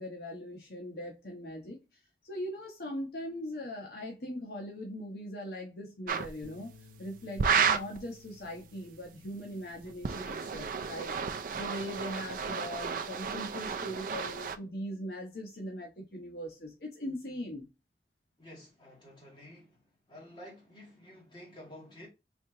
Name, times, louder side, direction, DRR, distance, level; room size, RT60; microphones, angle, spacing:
voice 1, 0.0-17.7, equal, 60° left, 0.9 m, -40 dB
sound 1, 6.1-6.3 7.4-8.0 9.8-14.6, right 6 dB, 50° right, 0.4 m, -32 dB
Bass guitar, 6.4-12.7, left 3 dB, 80° left, 1.4 m, -60 dB
voice 2, 18.4-19.8 20.1-22.1, left 1 dB, 25° left, 1.9 m, -51 dB
4.2 x 2.9 x 2.7 m
head